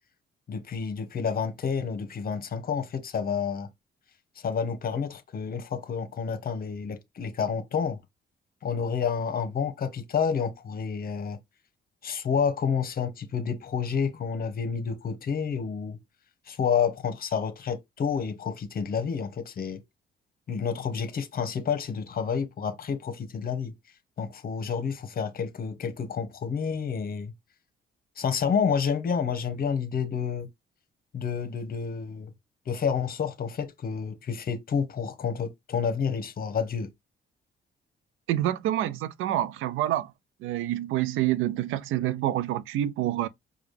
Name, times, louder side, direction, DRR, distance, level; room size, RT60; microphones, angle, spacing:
voice 1, 0.5-3.7 4.4-8.0 8.6-11.4 12.0-16.0 16.5-19.8 20.5-23.7 24.2-27.3 28.2-30.5 31.1-32.3 32.7-36.9, left 6 dB, 50° left, 1.0 m, -29 dB
voice 2, 38.3-40.1 40.4-43.3, right 13 dB, 90° right, 0.5 m, -27 dB
4.9 x 2.3 x 3.2 m
cardioid pair, 90°, 20 cm